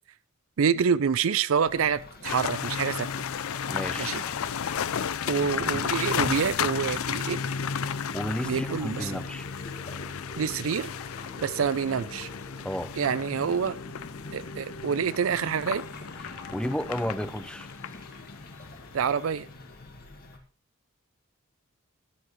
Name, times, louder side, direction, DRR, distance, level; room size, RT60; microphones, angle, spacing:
voice 1, 0.6-3.1 4.0-4.2 5.3-7.4 8.4-9.2 10.4-10.9 11.4-12.3 13.0-13.8 14.3-15.8 18.9-19.5, right 6 dB, 70° right, 0.4 m, -27 dB
sound 1, 1.7-20.4, left 1 dB, 50° left, 1.8 m, -44 dB
sound 2, 2.2-19.4, left 7 dB, 85° left, 0.5 m, -33 dB
voice 2, 3.7-4.2 7.8-9.5 12.6-12.9 16.3-17.7, equal, 5° left, 0.6 m, -33 dB
13.5 x 10.0 x 3.1 m
head